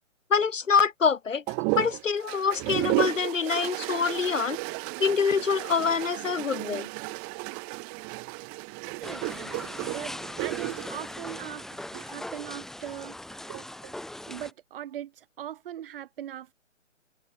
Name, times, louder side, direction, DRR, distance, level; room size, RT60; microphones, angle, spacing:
voice 1, 0.3-1.4 1.7-4.6 5.0-6.9, left 6 dB, 70° left, 5.8 m, -25 dB
sound 1, 1.5-12.1 13.3-13.9, right 36 dB, 25° right, 4.6 m, -33 dB
voice 2, 8.9-9.6 9.9-10.1 10.4-13.2 14.3-16.5, right 11 dB, 45° right, 7.3 m, -40 dB
sound 2, 9.0-14.5, left 1 dB, ahead, 1.7 m, -40 dB
hypercardioid pair, 145°, 39 cm